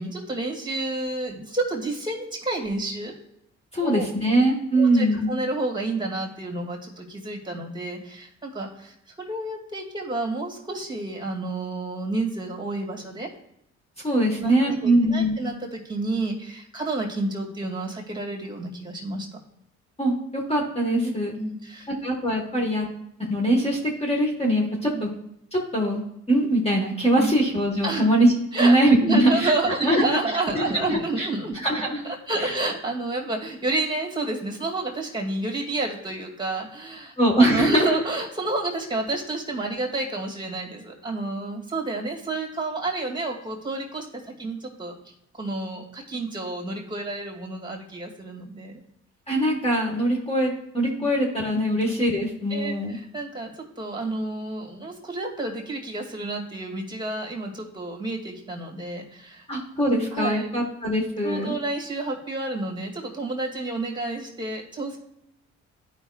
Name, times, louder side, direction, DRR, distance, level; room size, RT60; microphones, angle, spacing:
voice 1, 0.0-3.1 3.8-4.2 4.7-13.3 14.4-19.3 21.0-21.9 24.9-25.0 27.2-27.3 27.8-28.1 28.5-31.6 32.0-44.9 45.3-48.7 51.0-51.1 51.7-51.8 52.5-59.5 60.1-60.5 61.2-65.0, right 2 dB, 15° right, -1 dB, 2.2 m, -30 dB
voice 2, 3.7-5.3 14.0-15.4 20.0-21.3 21.9-22.9 23.3-25.1 25.5-26.0 26.3-29.5 29.8-30.0 30.5-31.3 31.5-32.0 32.4-32.6 37.2-38.0 49.3-53.0 59.5-61.5, right 1 dB, 20° left, -1 dB, 1.4 m, -22 dB
12.0 x 5.3 x 2.4 m, 0.79 s
cardioid pair, 90°, 30 cm